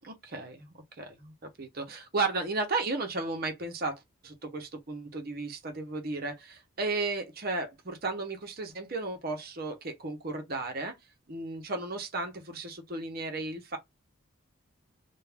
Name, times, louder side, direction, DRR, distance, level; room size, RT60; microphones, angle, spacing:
voice 1, 0.0-10.9 11.3-13.8, right 3 dB, 45° right, 0.7 m, -34 dB
2.4 x 2.3 x 3.3 m
head